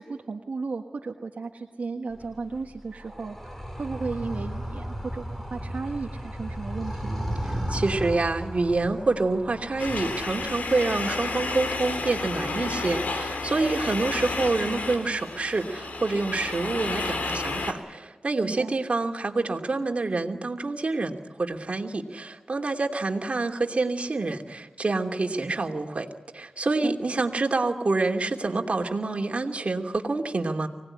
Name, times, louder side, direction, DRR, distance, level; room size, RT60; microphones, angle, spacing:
voice 1, 0.0-7.3 18.4-18.7 26.8-27.0, right 4 dB, 75° right, 2 dB, 1.4 m, -35 dB
Animal, 2.1-10.7, equal, 10° left, 5.4 m, -35 dB
voice 2, 7.4-26.1 26.3-30.7, right 3 dB, 55° right, 3 dB, 2.8 m, -27 dB
sound 1, 9.8-17.7, left 3 dB, 80° left, 3.5 m, -31 dB
25.0 x 18.5 x 9.9 m, 1.2 s
cardioid pair, 50°, 3 cm